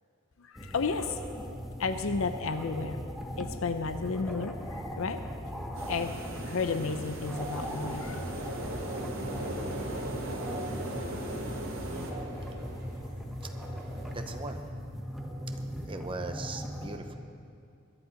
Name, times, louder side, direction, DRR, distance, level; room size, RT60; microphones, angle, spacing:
voice 1, 0.4-1.3 1.8-3.0 3.4-5.2 5.9-8.3, left 4 dB, 80° left, 9 dB, 0.6 m, -33 dB
sound 1, 0.6-17.0, equal, ahead, 1.1 m, -39 dB
sound 2, 5.7-12.1, right 2 dB, 85° right, 1.8 m, -42 dB
sound 3, 6.4-14.2, equal, 55° right, 3.3 m, -40 dB
voice 2, 11.7-12.2 14.1-14.6 15.9-17.3, right 2 dB, 25° right, 5 dB, 0.9 m, -40 dB
21.5 x 11.0 x 5.2 m, 2.5 s
head